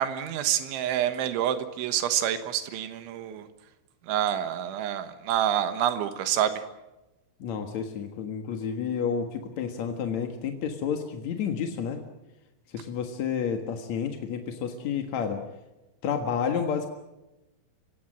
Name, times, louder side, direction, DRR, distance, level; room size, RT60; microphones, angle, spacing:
voice 1, 0.0-3.5 4.1-6.6, right 10 dB, 90° right, 9 dB, 3.8 m, -27 dB
voice 2, 7.4-12.0 12.7-15.4 16.0-16.9, left 7 dB, 60° left, 5 dB, 2.0 m, -30 dB
30.0 x 18.0 x 7.6 m, 1.0 s
omnidirectional pair, 5.3 m